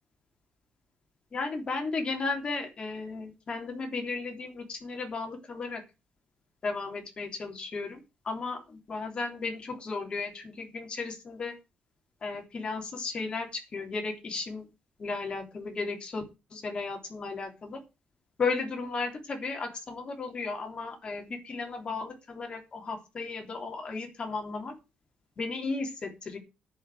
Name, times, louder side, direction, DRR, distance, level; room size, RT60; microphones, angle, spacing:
voice 1, 1.3-5.8 6.6-8.0 8.2-11.5 12.2-14.6 15.0-16.2 16.5-17.8 18.4-24.8 25.4-26.4, left 4 dB, 35° left, 3 dB, 3.4 m, -34 dB
10.0 x 5.7 x 8.2 m, 0.28 s
cardioid pair, 140°, 3 cm